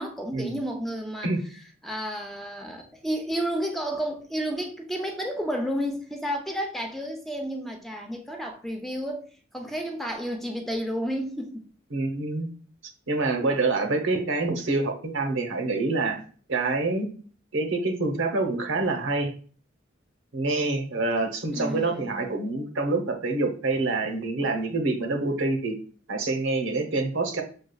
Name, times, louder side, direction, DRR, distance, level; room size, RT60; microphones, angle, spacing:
voice 1, 0.0-1.3 1.8-9.2 9.5-11.7 21.5-22.3, equal, ahead, 0.5 m, -31 dB
voice 2, 11.9-12.5 13.1-16.2 16.5-17.1 17.5-19.3 20.3-25.8 26.1-27.4, right 3 dB, 75° right, 0.8 m, -26 dB
6.4 x 2.3 x 2.3 m
head